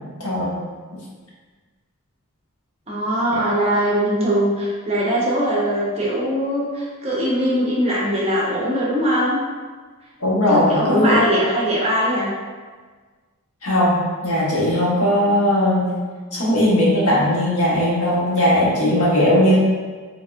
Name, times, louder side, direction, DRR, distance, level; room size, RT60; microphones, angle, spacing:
voice 1, 0.2-0.5 10.2-11.2 13.6-16.0 16.3-19.6, left 1 dB, 85° left, -6 dB, 1.0 m, -18 dB
voice 2, 2.9-9.4 10.5-12.3, equal, 30° right, -5 dB, 0.8 m, -21 dB
3.4 x 3.0 x 2.4 m, 1.5 s
head